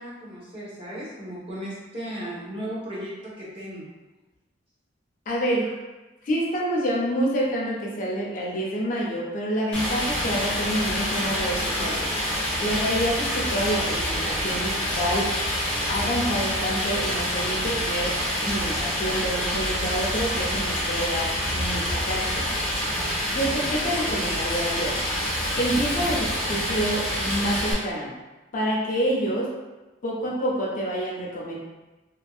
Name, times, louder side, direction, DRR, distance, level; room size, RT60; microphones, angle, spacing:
voice 1, 0.0-3.9, equal, 30° right, -7 dB, 0.9 m, -36 dB
voice 2, 5.3-5.7 6.2-12.1 12.6-15.3 15.9-22.5 23.2-25.0 25.5-28.1 28.5-29.5 30.0-31.6, equal, 45° left, -3 dB, 0.5 m, -27 dB
Stream, 9.7-27.7, equal, 5° left, 0.9 m, -27 dB
2.8 x 2.6 x 2.3 m, 1.1 s
head